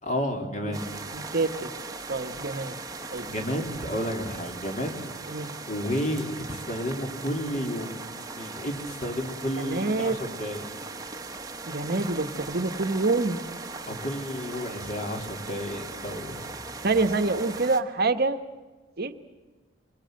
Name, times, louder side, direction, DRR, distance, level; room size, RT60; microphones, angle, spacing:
voice 1, 0.0-0.8 3.3-5.3 5.7-10.7 13.9-16.4, equal, 35° left, 3 dB, 3.6 m, -31 dB
sound 1, 0.7-17.8, right 3 dB, 20° right, 1.3 m, -39 dB
voice 2, 1.1-1.7 2.1-2.8 3.1-3.3 5.3-5.5 9.6-10.1 11.7-13.4 16.8-18.4 19.0-19.1, right 3 dB, 50° right, 9 dB, 1.2 m, -26 dB
25.0 x 22.0 x 7.8 m, 1.3 s
head